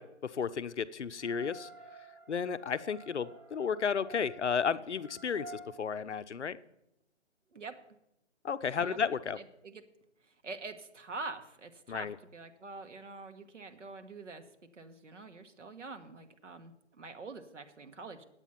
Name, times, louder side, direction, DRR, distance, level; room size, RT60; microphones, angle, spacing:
voice 1, 0.0-1.7 2.3-6.6 8.4-9.4 11.9-12.2, left 6 dB, 65° left, 14 dB, 0.6 m, -33 dB
sound 1, 1.2-5.7, right 1 dB, ahead, 1.0 m, -50 dB
voice 2, 9.4-9.8 10.2-14.4 14.7-18.2, right 3 dB, 75° right, 7 dB, 1.3 m, -45 dB
9.0 x 8.3 x 5.6 m, 0.83 s
hypercardioid pair, 175°, 37 cm